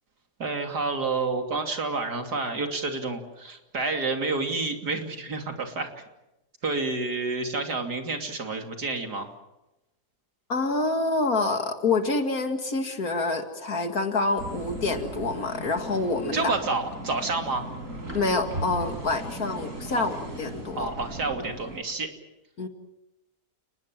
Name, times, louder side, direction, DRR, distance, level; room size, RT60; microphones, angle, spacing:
voice 1, 0.4-5.9 6.6-9.3 16.3-17.7 19.9-20.1 20.7-22.1, right 3 dB, 85° right, 4 dB, 3.5 m, -29 dB
voice 2, 10.5-16.5 18.1-20.9 22.6-22.7, left 3 dB, 65° left, 6 dB, 2.6 m, -27 dB
sound 1, 14.4-21.8, right 1 dB, 55° right, 5.5 m, -37 dB
29.5 x 20.5 x 7.5 m, 0.94 s
omnidirectional pair, 1.7 m